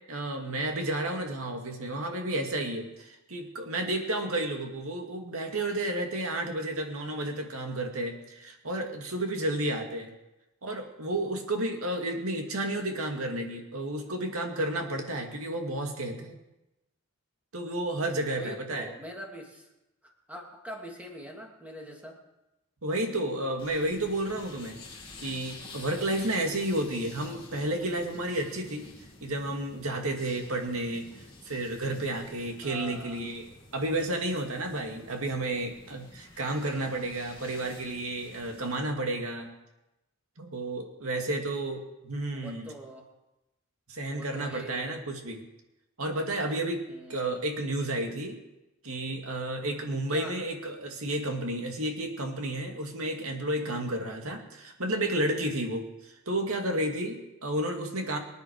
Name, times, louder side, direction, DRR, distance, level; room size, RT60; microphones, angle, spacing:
voice 1, 0.1-10.1 10.6-16.4 17.5-18.9 22.8-24.8 25.2-28.8 29.2-31.1 31.5-39.5 40.4-42.7 43.9-45.4 46.0-48.4 48.8-58.2, right 1 dB, 85° right, 3 dB, 2.2 m, -31 dB
voice 2, 18.3-19.7 20.0-22.2 32.6-33.2 42.3-43.1 44.1-45.0 46.9-47.4 50.1-50.4, equal, 5° right, 0 dB, 2.5 m, -43 dB
sound 1, 23.6-38.7, left 3 dB, 25° left, 2.4 m, -50 dB
24.5 x 9.7 x 4.7 m, 0.96 s
head